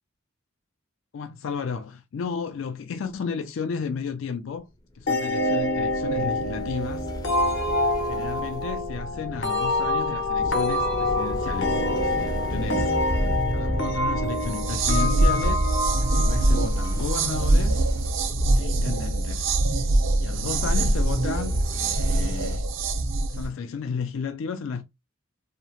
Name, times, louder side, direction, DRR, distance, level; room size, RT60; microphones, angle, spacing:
voice 1, 1.1-4.7 4.9-7.1 8.0-12.9 13.5-15.7 16.0-17.9 18.6-19.5 20.2-22.6 23.3-24.8, left 5 dB, 85° left, 0.4 m, -33 dB
sound 1, 5.0-22.6, left 1 dB, 20° left, 0.4 m, -34 dB
sound 2, 5.1-17.5, left 1 dB, 65° left, 0.7 m, -27 dB
sound 3, 14.4-23.5, right 2 dB, 75° right, 0.5 m, -23 dB
2.8 x 2.1 x 2.8 m
head